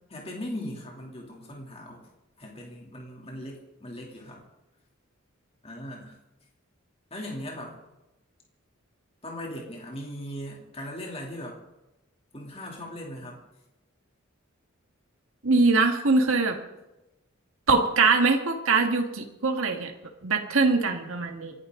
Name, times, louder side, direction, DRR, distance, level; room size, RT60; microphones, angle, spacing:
voice 1, 0.1-2.1 2.4-4.4 5.6-6.1 7.1-7.7 9.2-11.6 12.3-13.4, left 1 dB, 30° left, -1 dB, 2.9 m, -39 dB
voice 2, 15.4-16.6 17.7-19.9 20.2-21.5, right 3 dB, 80° right, 3 dB, 1.8 m, -22 dB
28.0 x 11.0 x 3.8 m, 0.98 s
head